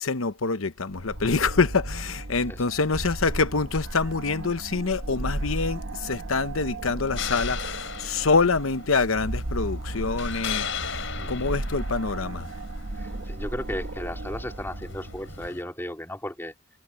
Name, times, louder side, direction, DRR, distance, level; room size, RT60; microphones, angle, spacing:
voice 1, 0.0-12.5, left 4 dB, 85° left, 1.0 m, -26 dB
sound 1, 0.9-15.5, right 1 dB, 85° right, 1.4 m, -35 dB
sound 2, 7.1-15.6, left 7 dB, 65° left, 5.8 m, -38 dB
voice 2, 11.1-11.5 12.9-16.5, left 1 dB, 10° left, 3.1 m, -35 dB
head